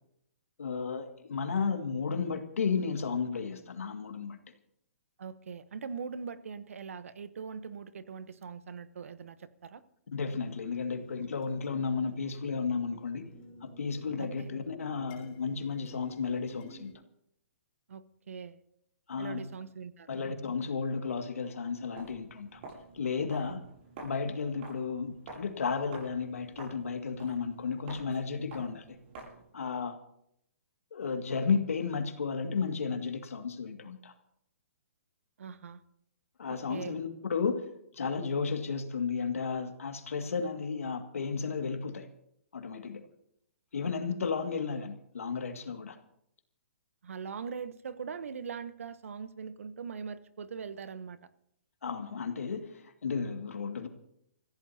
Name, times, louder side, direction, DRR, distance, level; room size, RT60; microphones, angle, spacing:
voice 1, 0.6-4.4 10.1-13.3 13.6-16.9 19.1-19.5 20.1-22.6 22.9-23.7 24.0-29.0 29.5-30.0 30.9-34.1 36.4-37.6 37.9-42.1 42.5-43.1 43.7-46.0 51.8-53.9, left 5 dB, 80° left, 6 dB, 2.1 m, -33 dB
voice 2, 5.2-9.8 14.2-14.5 17.9-18.6 19.2-20.2 23.5-23.6 35.4-35.8 36.5-36.9 47.0-51.2, right 6 dB, 75° right, 14 dB, 1.0 m, -41 dB
sound 1, 10.8-16.9, equal, 35° left, 6.0 m, -52 dB
Walk footsteps, 21.9-29.5, right 3 dB, 45° right, 7.4 m, -50 dB
27.0 x 15.5 x 2.9 m, 0.73 s
hypercardioid pair, 140°, 7 cm